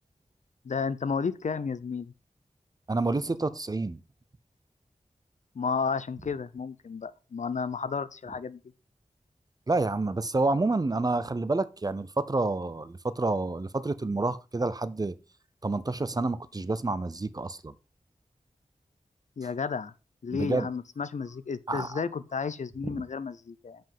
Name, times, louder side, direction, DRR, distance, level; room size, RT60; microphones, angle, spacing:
voice 1, 0.6-2.1 5.6-8.6 19.4-19.9 20.2-23.8, left 5 dB, 70° left, 0.6 m, -32 dB
voice 2, 2.9-4.0 9.7-15.1 15.6-17.7 20.3-20.7 21.7-22.0 22.8-23.0, right 3 dB, 30° right, 0.6 m, -29 dB
7.8 x 5.2 x 5.3 m
wide cardioid pair, 95°, 13 cm